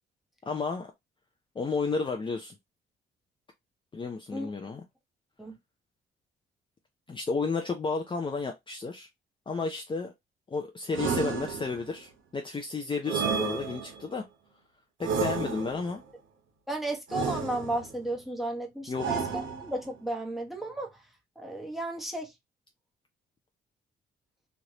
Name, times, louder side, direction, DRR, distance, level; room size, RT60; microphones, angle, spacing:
voice 1, 0.5-0.9 1.6-2.6 3.9-4.8 7.1-9.1 9.5-10.1 10.5-14.2 15.0-16.0 18.9-19.1, left 4 dB, 25° left, 0.6 m, -32 dB
sound 1, 10.9-12.0 13.1-14.1 15.0-16.0 17.1-18.0 19.0-19.9, right 6 dB, 75° right, 1.0 m, -32 dB
voice 2, 16.7-20.9 21.4-22.3, right 1 dB, ahead, 1.0 m, -34 dB
3.2 x 2.5 x 2.8 m
cardioid pair, 90°, 20 cm